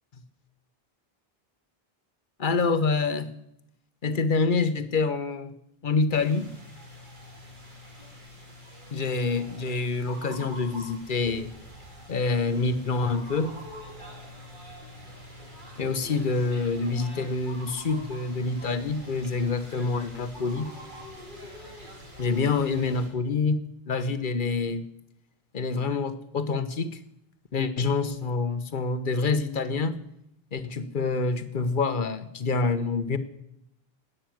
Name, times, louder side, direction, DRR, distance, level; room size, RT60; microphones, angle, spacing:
voice 1, 2.4-3.3 4.0-5.5 5.8-6.5 8.9-11.5 12.1-13.6 15.8-20.7 22.2-23.6 23.9-24.8 25.5-27.0 27.5-30.0 30.5-33.2, left 4 dB, 55° left, 12 dB, 1.1 m, -26 dB
sound 1, 6.1-23.1, equal, 50° right, 2.8 m, -45 dB
12.0 x 9.0 x 9.2 m, 0.79 s
omnidirectional pair, 1.0 m